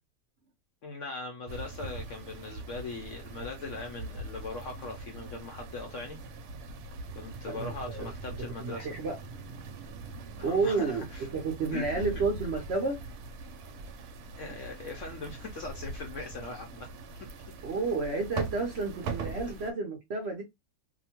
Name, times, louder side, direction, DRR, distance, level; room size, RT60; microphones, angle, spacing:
voice 1, 0.8-6.2 7.1-8.9 10.4-11.2 11.7-12.2 14.4-16.9, left 3 dB, 65° left, 0.8 m, -40 dB
sound 1, 1.5-19.7, right 3 dB, 75° right, 1.1 m, -42 dB
voice 2, 7.5-8.1 8.6-9.2 10.4-13.0 17.6-20.4, right 4 dB, 60° right, 0.7 m, -31 dB
2.8 x 2.1 x 2.8 m
omnidirectional pair, 1.7 m